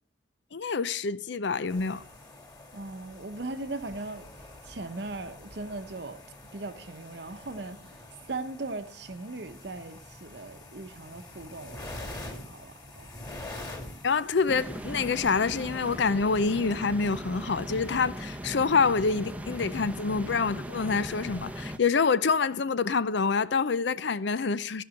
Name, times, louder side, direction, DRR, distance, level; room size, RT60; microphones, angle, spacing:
voice 1, 0.5-2.0 14.0-24.8, left 5 dB, 65° left, 0.6 m, -26 dB
sound 1, 1.7-16.0, left 2 dB, 20° left, 2.7 m, -46 dB
voice 2, 2.7-4.2 4.6-6.2 6.5-7.8 8.3-13.1, right 2 dB, 60° right, 0.9 m, -39 dB
sound 2, 14.5-21.8, equal, 5° right, 0.7 m, -38 dB
15.0 x 5.4 x 7.5 m
head